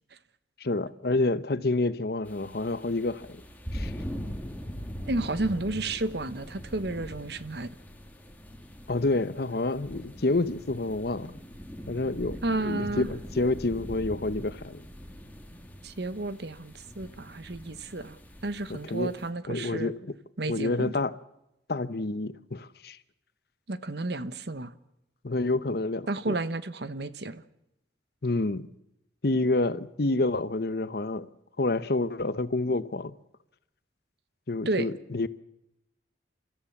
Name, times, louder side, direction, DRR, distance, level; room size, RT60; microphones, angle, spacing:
voice 1, 0.6-3.4 3.7-3.9 8.9-11.4 11.9-14.8 18.7-19.1 19.5-19.9 20.5-21.1 21.7-23.0 25.2-26.3 28.2-28.7 29.2-31.3 31.6-33.1 34.5-35.3, left 2 dB, 55° left, 0.8 m, -28 dB
sound 1, 2.2-19.3, equal, 10° left, 2.1 m, -42 dB
voice 2, 5.1-7.7 12.4-13.1 15.8-18.2 18.4-19.9 20.4-21.0 23.7-24.7 26.1-27.4 34.6-34.9, right 2 dB, 60° right, 1.1 m, -32 dB
30.0 x 14.0 x 7.2 m
head